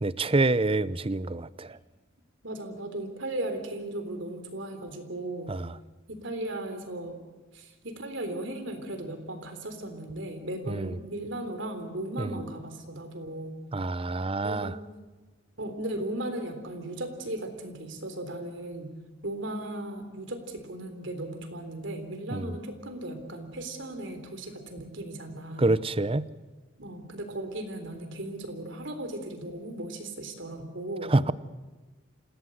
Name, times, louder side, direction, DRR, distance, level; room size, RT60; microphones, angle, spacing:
voice 1, 0.0-1.8 5.5-5.7 10.7-10.9 12.2-12.4 13.7-14.7 22.3-22.5 25.6-26.3 31.1-31.3, right 2 dB, 30° right, 17 dB, 0.7 m, -26 dB
voice 2, 2.4-5.6 6.1-7.2 7.5-13.6 14.4-14.8 15.6-18.9 19.2-25.8 26.8-31.2, right 1 dB, 65° right, 7 dB, 3.7 m, -36 dB
27.5 x 17.0 x 8.0 m, 1.3 s
head